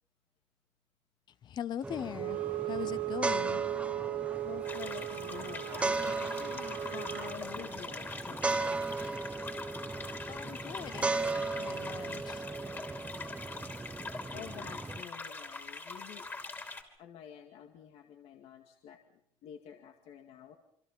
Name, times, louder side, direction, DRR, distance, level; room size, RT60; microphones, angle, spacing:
voice 1, 1.4-3.6 10.3-12.4, left 10 dB, 45° left, 18 dB, 0.9 m, -41 dB
sound 1, 1.8-15.0, right 3 dB, 10° right, 0.9 m, -37 dB
Wind instrument woodwind instrument, 2.1-7.4, right 18 dB, 70° right, 1.1 m, -37 dB
voice 2, 4.4-8.9 14.3-16.3 17.0-19.0 19.4-20.6, left 9 dB, 75° left, 5 dB, 2.2 m, -48 dB
sound 2, 4.6-16.8, left 3 dB, 20° left, 3.1 m, -43 dB
27.5 x 26.0 x 5.5 m, 0.66 s
cardioid pair, 170°, 11 cm